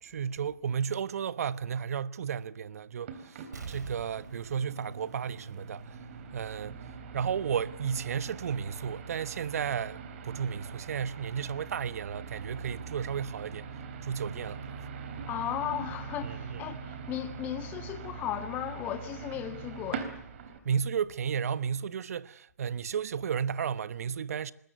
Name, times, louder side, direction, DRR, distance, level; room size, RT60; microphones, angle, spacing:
voice 1, 0.0-3.4 3.7-6.0 6.3-6.8 7.1-13.7 14.0-14.7 16.2-16.8 20.6-24.5, right 7 dB, 60° right, 1.1 m, -33 dB
sound 1, 3.0-20.6, right 5 dB, 45° right, 3.6 m, -43 dB
Explosion, 3.5-6.1 6.5-6.6, right 4 dB, 80° right, 5.3 m, -45 dB
voice 2, 15.3-20.2, left 11 dB, 20° left, 1.8 m, -36 dB
25.0 x 20.5 x 8.1 m
hypercardioid pair, 145°, 9 cm